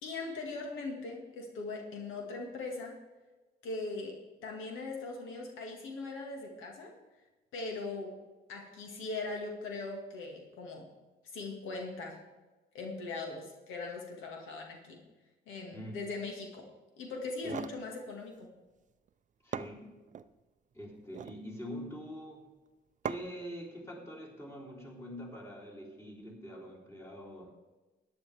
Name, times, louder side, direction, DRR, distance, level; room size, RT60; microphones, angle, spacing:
voice 1, 0.0-3.0 3.6-6.9 7.5-8.2 8.5-10.9 11.2-12.2 12.7-15.0 15.5-16.7 17.0-18.5, left 3 dB, 90° left, 1 dB, 1.9 m, -40 dB
voice 2, 15.7-16.1 17.4-17.7 19.4-19.9 20.7-22.5 23.0-27.5, equal, 15° left, -3 dB, 3.5 m, -44 dB
sound 1, 17.2-17.8 19.1-19.2 19.5-20.3 21.0-21.4 23.0-23.5, right 8 dB, 40° right, 0.5 m, -40 dB
14.5 x 10.0 x 3.5 m, 1.2 s
cardioid pair, 90°, 20 cm